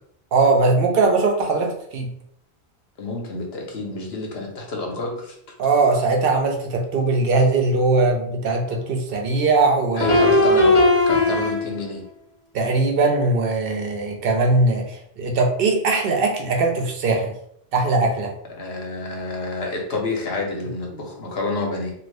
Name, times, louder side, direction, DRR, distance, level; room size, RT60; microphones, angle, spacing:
voice 1, 0.3-2.1 5.6-10.3 12.5-17.3 17.7-18.3, right 3 dB, 65° right, 2 dB, 0.8 m, -20 dB
voice 2, 3.0-5.3 9.9-12.0 18.5-21.9, left 2 dB, 70° left, 0 dB, 1.0 m, -29 dB
sound 1, 8.7-8.8 10.0-12.0, left 2 dB, 35° left, 0.8 m, -17 dB
2.5 x 2.4 x 3.2 m, 0.70 s
omnidirectional pair, 1.1 m